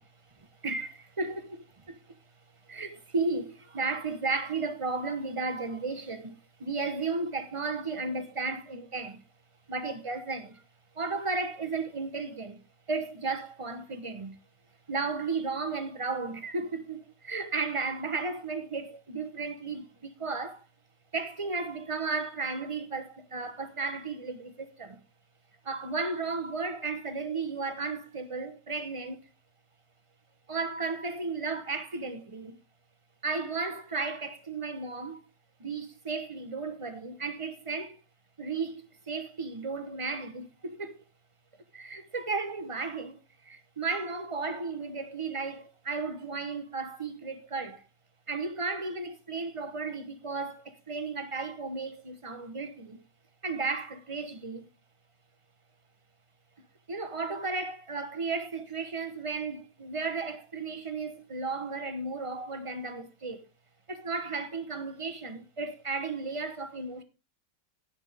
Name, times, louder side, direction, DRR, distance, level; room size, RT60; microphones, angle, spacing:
voice 1, 0.6-1.6 2.7-9.2 9.7-10.6 10.9-12.6 12.9-14.4 14.9-20.6 21.1-25.0 25.6-29.3 30.5-32.6 33.2-35.2 35.6-38.0 38.4-41.0 41.7-47.9 48.3-53.0 53.4-54.7 56.9-63.5 63.9-67.0, right 4 dB, 20° right, 0.9 m, -34 dB
16.5 x 6.2 x 3.5 m
omnidirectional pair, 1.9 m